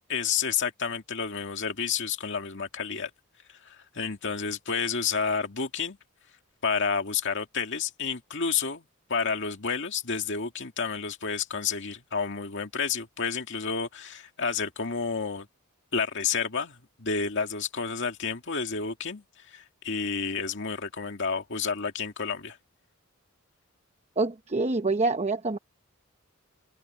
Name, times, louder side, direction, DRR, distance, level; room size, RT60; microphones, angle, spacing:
voice 1, 0.1-3.1 3.6-6.0 6.6-8.8 9.1-15.5 15.9-22.6, left 5 dB, 60° left, 2.2 m, -30 dB
voice 2, 24.2-25.6, right 3 dB, 30° right, 0.9 m, -26 dB
open air
head